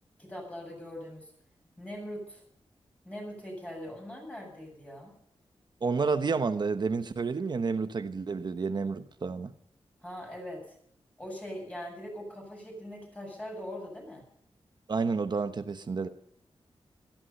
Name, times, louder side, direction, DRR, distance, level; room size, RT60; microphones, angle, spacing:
voice 1, 0.2-1.3 1.8-2.4 3.0-5.1 10.0-10.6 11.2-14.2, equal, 15° left, 7.8 m, -41 dB
voice 2, 5.8-9.5 14.9-16.1, right 4 dB, 45° right, 1.0 m, -30 dB
17.5 x 14.5 x 5.5 m
wide cardioid pair, 135°, 10 cm